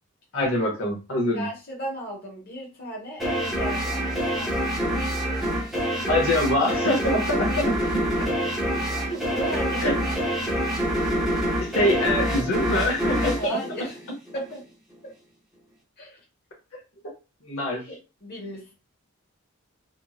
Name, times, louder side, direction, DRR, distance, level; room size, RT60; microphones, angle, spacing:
voice 1, 0.3-1.4 6.1-7.6 9.8-10.0 11.6-13.6 17.4-17.9, left 1 dB, 65° left, -1 dB, 0.9 m, -24 dB
voice 2, 1.3-4.7 9.1-10.2 10.5-10.7 13.4-14.0 14.3-14.7 15.0-15.1 16.0-16.2 17.8-18.0 18.2-18.7, right 1 dB, 45° left, -2 dB, 1.2 m, -36 dB
sound 1, 3.2-14.5, equal, ahead, 0.8 m, -26 dB
2.9 x 2.7 x 2.4 m, 0.31 s
head